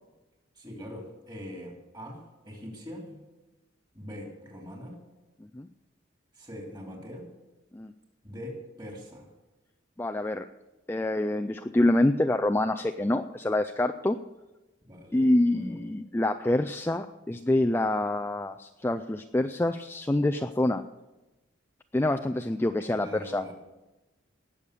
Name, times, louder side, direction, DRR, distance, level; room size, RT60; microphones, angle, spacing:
voice 1, 0.5-3.2 3.9-5.0 6.3-7.3 8.2-9.3 14.8-15.3 15.5-15.8 22.9-23.5, equal, 20° right, 0 dB, 3.2 m, -42 dB
voice 2, 10.0-10.5 10.9-14.2 15.1-20.8 21.9-23.4, left 1 dB, 10° left, 6 dB, 0.4 m, -26 dB
19.0 x 7.3 x 6.8 m, 1.1 s
head